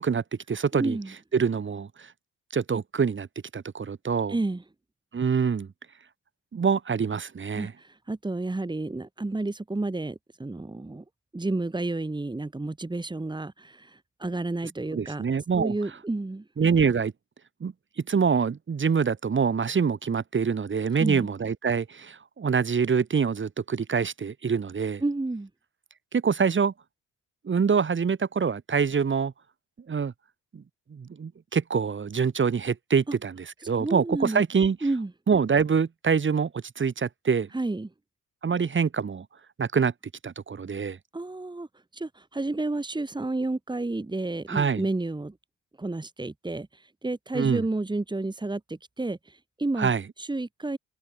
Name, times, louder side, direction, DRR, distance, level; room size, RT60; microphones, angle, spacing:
voice 1, 0.0-1.0 1.3-2.1 2.5-3.3 3.5-4.3 5.1-5.7 6.5-7.7 14.9-15.7 16.6-17.1 17.6-17.7 18.1-25.0 26.1-26.7 27.4-29.3 29.9-30.1 30.5-30.6 30.9-34.8 35.3-37.5 38.4-39.2 39.6-39.9 40.2-41.0 44.5-44.8 47.3-47.6 49.8-50.0, right 6 dB, 40° right, 4.9 m, -25 dB
voice 2, 0.8-1.1 4.3-4.6 7.6-11.0 11.3-15.2 15.5-16.5 20.9-21.3 25.0-25.5 33.8-34.4 34.8-35.1 37.5-37.9 41.1-41.7 41.9-45.3 45.8-49.9 50.2-50.8, right 2 dB, 15° right, 3.7 m, -31 dB
cardioid pair, 90°, 30 cm